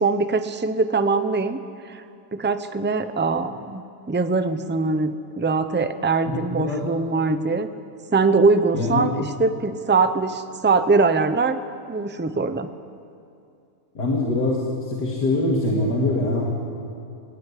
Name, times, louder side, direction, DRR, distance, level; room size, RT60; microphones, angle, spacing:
voice 1, 0.0-1.6 1.9-2.0 2.3-3.8 4.1-7.7 8.1-11.6 11.9-12.7, right 4 dB, 15° right, 10 dB, 0.4 m, -22 dB
voice 2, 6.3-6.8 8.7-9.1 13.9-16.5, left 2 dB, 75° left, -3 dB, 3.1 m, -23 dB
25.5 x 17.0 x 10.0 m, 2.5 s
omnidirectional pair, 1.8 m